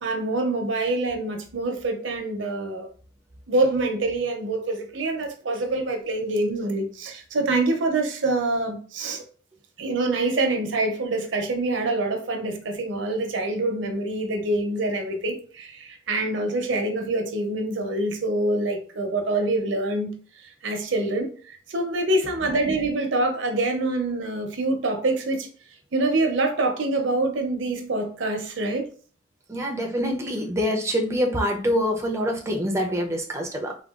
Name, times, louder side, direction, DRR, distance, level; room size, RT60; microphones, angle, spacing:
voice 1, 0.0-2.9 3.5-9.2 9.8-20.1 20.4-25.5 25.9-28.9, right 2 dB, 75° right, 0.6 m, -25 dB
voice 2, 29.5-33.8, equal, 15° right, 0.5 m, -25 dB
3.6 x 2.2 x 2.4 m
head